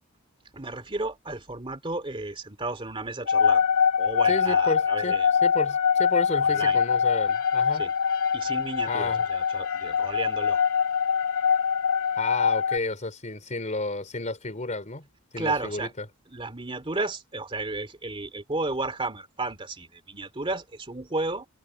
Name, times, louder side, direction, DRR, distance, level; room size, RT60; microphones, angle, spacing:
voice 1, 0.5-3.7 4.0-5.3 6.4-6.8 7.7-7.9 8.3-10.6 15.4-15.9 16.3-21.5, right 2 dB, 25° right, 2.5 m, -33 dB
sound 1, 3.3-12.8, left 6 dB, 75° left, 2.4 m, -23 dB
voice 2, 4.3-5.2 5.4-7.8 8.9-9.2 12.2-15.1 15.3-16.0, left 2 dB, 35° left, 3.6 m, -31 dB
head